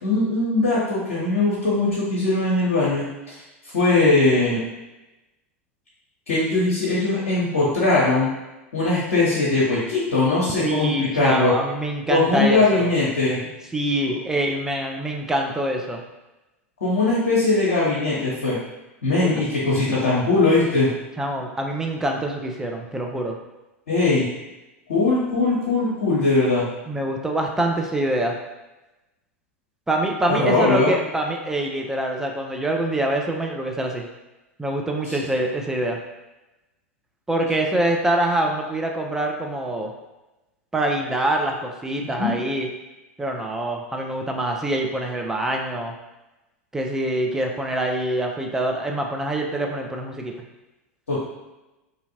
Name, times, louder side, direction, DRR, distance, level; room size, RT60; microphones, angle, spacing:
voice 1, 0.0-3.4 3.7-4.6 6.3-8.3 8.7-11.5 12.1-13.4 16.8-18.6 19.0-20.9 23.9-24.3 24.9-26.7 30.3-30.9 35.1-35.2 42.1-42.3 51.1-51.2, left 3 dB, 70° left, -8 dB, 0.8 m, -20 dB
voice 2, 10.6-12.9 13.7-16.0 21.2-23.4 26.9-28.4 29.9-34.1 34.6-36.0 37.3-39.9 40.7-42.7 43.2-45.9 46.7-50.3, right 1 dB, 5° right, 1 dB, 0.4 m, -25 dB
2.7 x 2.5 x 2.7 m, 1.0 s
figure-of-eight pair, 85°, 7 cm